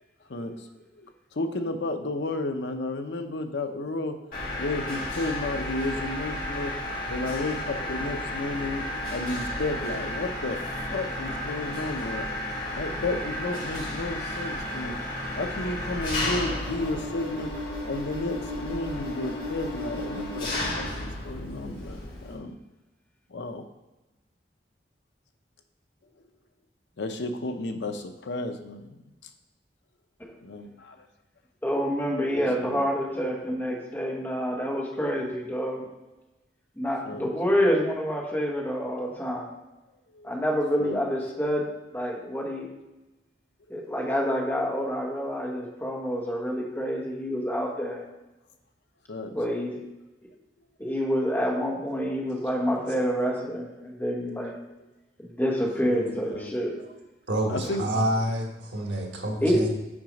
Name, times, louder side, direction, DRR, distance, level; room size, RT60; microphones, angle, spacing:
voice 1, 0.3-0.7 0.9-4.2 4.6-6.7 7.1-12.3 12.7-14.9 15.4-17.5 17.8-22.5 23.3-23.6 27.0-29.0 30.4-31.0 32.3-32.8 37.1-37.7 40.1-40.3 40.8-41.0 49.1-49.3 54.7-54.8 55.8-56.5 57.5-57.9 59.0-59.2, left 2 dB, 75° left, 6 dB, 0.7 m, -33 dB
Mechanisms, 4.3-22.4, left 1 dB, 50° left, 2.1 m, -33 dB
voice 2, 31.6-35.9 36.8-39.5 40.2-41.7 41.9-42.7 43.7-48.0 49.3-49.8 50.8-54.6 55.2-56.8 59.4-59.6, equal, 10° left, -2 dB, 1.2 m, -27 dB
voice 3, 57.3-59.7, right 1 dB, 90° right, 2 dB, 1.4 m, -28 dB
6.1 x 4.8 x 5.2 m, 1.0 s
head